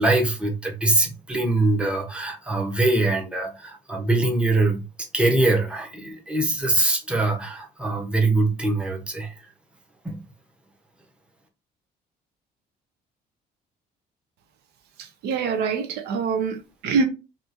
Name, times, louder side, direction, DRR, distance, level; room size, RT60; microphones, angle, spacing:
voice 1, 0.0-4.8 5.1-9.4 10.0-10.2, right 2 dB, 5° right, 0.7 m, -23 dB
voice 2, 15.0-17.0, right 5 dB, 75° right, 0.5 m, -25 dB
2.7 x 2.4 x 2.5 m
cardioid pair, 110°, 17 cm